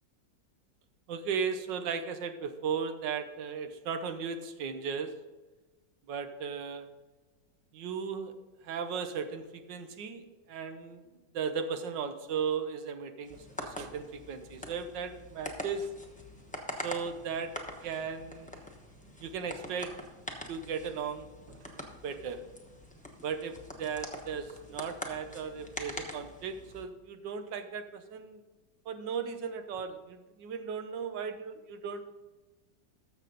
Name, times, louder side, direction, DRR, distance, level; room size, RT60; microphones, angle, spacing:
voice 1, 1.1-5.1 6.1-6.9 7.7-8.3 8.6-11.0 11.3-15.9 16.8-17.5 17.8-18.6 19.2-19.9 20.5-22.4 23.2-28.4 28.9-32.0, right 6 dB, 80° right, 9 dB, 1.5 m, -36 dB
sound 1, 13.2-26.8, left 1 dB, 5° left, 0.8 m, -44 dB
13.0 x 6.9 x 3.9 m, 1.2 s
omnidirectional pair, 2.0 m